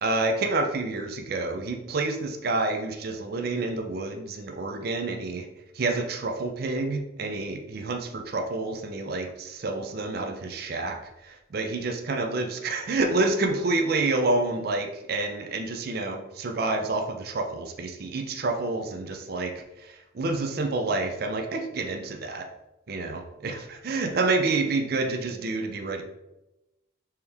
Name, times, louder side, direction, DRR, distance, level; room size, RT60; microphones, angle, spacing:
voice 1, 0.0-5.5 5.7-22.5 22.9-26.0, right 3 dB, 50° right, 4 dB, 0.4 m, -28 dB
4.4 x 3.4 x 3.4 m, 0.94 s
head